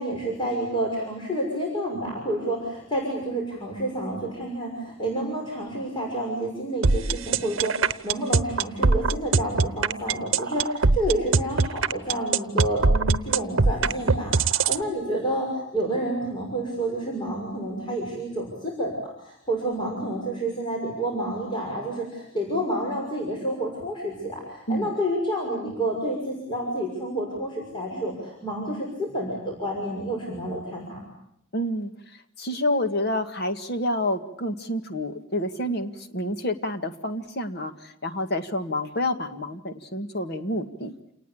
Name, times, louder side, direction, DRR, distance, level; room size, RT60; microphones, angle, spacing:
voice 1, 0.0-31.0, right 1 dB, 25° left, -1 dB, 6.2 m, -29 dB
sound 1, 6.8-14.8, right 4 dB, 70° right, 0.9 m, -21 dB
voice 2, 31.5-40.9, left 1 dB, 50° left, 8 dB, 1.9 m, -28 dB
28.5 x 19.5 x 8.6 m, 0.76 s
head